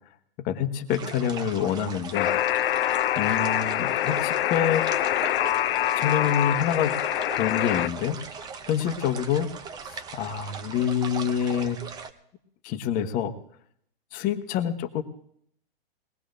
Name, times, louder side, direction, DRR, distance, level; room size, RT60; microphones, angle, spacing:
voice 1, 0.4-2.3 3.2-4.9 6.0-6.9 7.4-9.5 9.9-11.8 12.6-13.3 14.1-15.0, left 9 dB, 25° left, 8 dB, 1.0 m, -27 dB
sound 1, 0.9-12.1, right 5 dB, 15° right, 0.6 m, -39 dB
Alarm, 2.1-7.9, left 13 dB, 70° left, 0.5 m, -25 dB
21.5 x 18.5 x 2.6 m, 0.68 s
hypercardioid pair, 140°, 30 cm